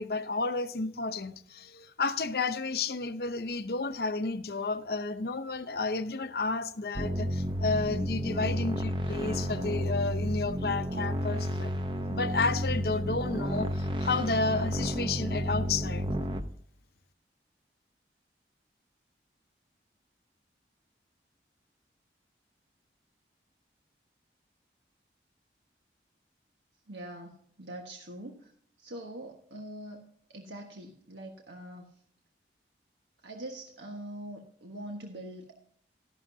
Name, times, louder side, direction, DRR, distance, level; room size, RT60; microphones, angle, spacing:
voice 1, 0.0-11.7 12.1-13.7 14.0-16.1, left 3 dB, 60° left, 0.7 m, -31 dB
sound 1, 7.0-16.4, equal, 25° right, 0.7 m, -31 dB
voice 2, 26.9-28.5 28.8-31.8 33.2-35.5, right 1 dB, 85° right, 1.4 m, -43 dB
13.0 x 11.5 x 2.7 m
head